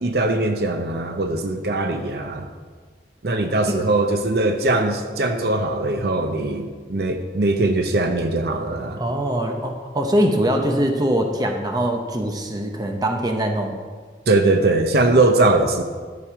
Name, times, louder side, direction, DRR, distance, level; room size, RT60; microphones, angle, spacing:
voice 1, 0.0-2.5 3.2-9.0 14.3-15.8, right 2 dB, 60° right, 6 dB, 0.7 m, -21 dB
voice 2, 9.0-13.8, right 1 dB, 20° right, 3 dB, 0.9 m, -22 dB
11.5 x 7.0 x 4.8 m, 1.5 s
head